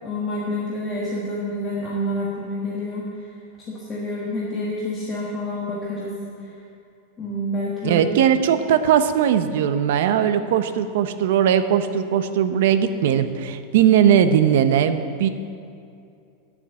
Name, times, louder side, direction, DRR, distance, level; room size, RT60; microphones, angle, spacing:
voice 1, 0.0-3.3 3.7-6.6 7.2-8.0, left 1 dB, 20° left, -6 dB, 1.4 m, -28 dB
voice 2, 7.8-15.3, right 9 dB, 65° right, 10 dB, 0.7 m, -19 dB
9.9 x 7.1 x 8.3 m, 2.5 s
supercardioid pair, 170°, 0 cm